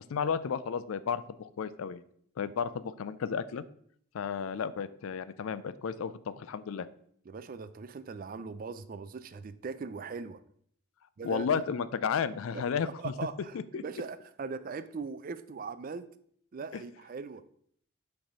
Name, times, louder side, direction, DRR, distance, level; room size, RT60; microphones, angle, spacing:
voice 1, 0.1-2.0 2.4-3.6 4.1-6.9 11.2-13.1 13.7-13.8 16.7-16.8, left 6 dB, 70° left, 15 dB, 0.4 m, -33 dB
voice 2, 7.3-10.4 11.2-11.6 12.5-16.1 16.5-17.4, right 4 dB, 40° right, 13 dB, 0.3 m, -40 dB
5.9 x 3.4 x 5.3 m, 0.65 s
head